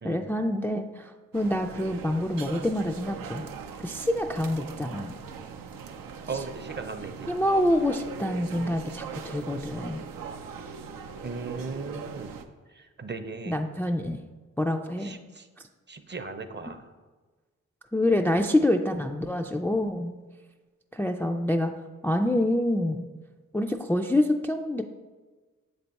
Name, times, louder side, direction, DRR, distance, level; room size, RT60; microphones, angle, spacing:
voice 1, 0.0-3.4 3.8-5.1 7.3-10.0 13.5-14.2 14.6-15.2 17.9-20.1 20.9-21.7 22.0-23.0 23.5-24.8, left 1 dB, 5° left, 3 dB, 0.3 m, -26 dB
sound 1, 1.3-12.4, right 6 dB, 85° right, 0.5 m, -40 dB
voice 2, 6.3-7.3 11.2-12.4 12.7-13.6 15.0-15.5 15.9-16.9, right 4 dB, 35° right, 8 dB, 0.6 m, -37 dB
7.1 x 3.4 x 4.0 m, 1.3 s
supercardioid pair, 40°, 33 cm